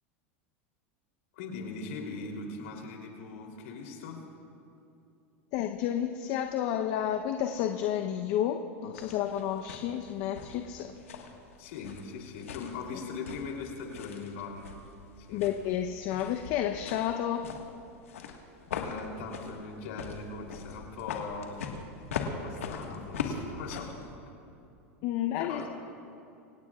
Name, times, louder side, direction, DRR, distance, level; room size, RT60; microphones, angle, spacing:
voice 1, 1.3-4.2 11.6-14.7 15.2-15.4 18.7-21.8 22.4-24.0 25.4-25.7, left 4 dB, 75° left, 0 dB, 3.3 m, -40 dB
voice 2, 5.5-10.9 15.3-17.5 25.0-25.7, left 10 dB, 60° left, 5 dB, 0.9 m, -31 dB
sound 1, 8.9-24.2, left 5 dB, 90° left, 1.6 m, -41 dB
26.0 x 17.0 x 2.5 m, 2.7 s
hypercardioid pair, 105°, 7 cm